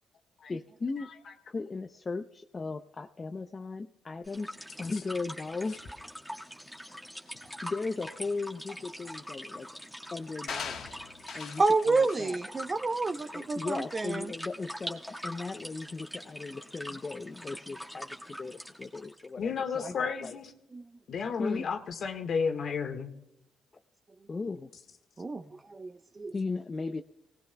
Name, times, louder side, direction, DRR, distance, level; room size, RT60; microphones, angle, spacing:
voice 1, 0.5-1.1 1.5-5.8 7.6-9.8 10.1-10.9 11.3-12.5 13.3-20.4 21.4-21.6 24.3-24.7 26.3-27.0, left 3 dB, 30° left, 7 dB, 0.6 m, -37 dB
sound 1, 4.2-19.3, equal, 5° right, 1.7 m, -43 dB
sound 2, 10.5-11.7 12.1-12.4 12.9-13.0, left 7 dB, 75° left, 1.3 m, -40 dB
voice 2, 11.6-14.3 25.2-25.4 25.7-26.3, right 3 dB, 30° right, 9 dB, 0.8 m, -28 dB
voice 3, 19.4-20.5 21.1-23.1, left 5 dB, 60° left, 6 dB, 1.6 m, -32 dB
26.5 x 18.5 x 2.3 m, 0.86 s
cardioid pair, 90°, 0 cm